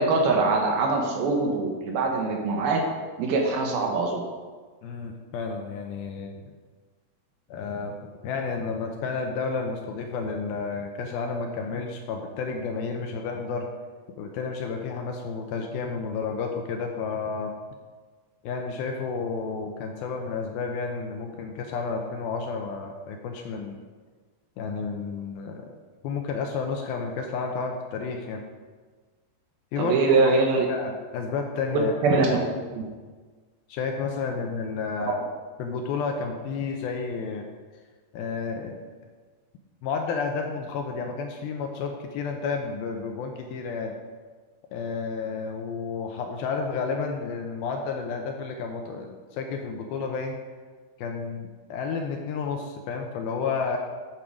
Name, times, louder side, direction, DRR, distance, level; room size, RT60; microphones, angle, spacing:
voice 1, 0.0-2.8 3.2-4.2 29.8-30.7 31.7-32.5 32.8-32.9 35.0-35.1, right 3 dB, 70° right, 1 dB, 2.7 m, -23 dB
voice 2, 4.8-6.5 7.5-8.0 8.2-13.7 14.2-17.5 18.4-23.8 24.6-25.7 26.0-28.4 29.7-30.2 30.7-32.1 33.7-35.2 35.6-37.5 38.1-38.8 39.8-43.9 44.7-50.4 51.0-53.8, left 5 dB, 75° left, 3 dB, 2.3 m, -31 dB
9.1 x 8.5 x 4.9 m, 1.5 s
omnidirectional pair, 4.8 m